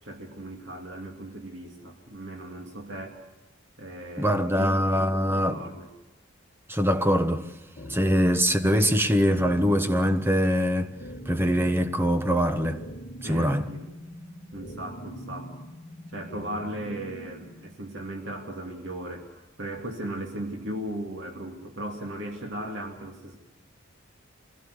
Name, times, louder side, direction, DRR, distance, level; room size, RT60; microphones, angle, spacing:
voice 1, 0.0-3.2 3.8-5.9 13.2-13.9 14.5-15.6 16.1-23.4, right 1 dB, 65° right, 2.6 m, -37 dB
voice 2, 4.2-5.6 6.7-7.5 7.9-10.9 11.3-12.8 13.2-13.7, equal, 10° right, 1.1 m, -23 dB
sound 1, 7.8-17.7, equal, 45° left, 2.0 m, -43 dB
25.5 x 16.5 x 8.1 m
head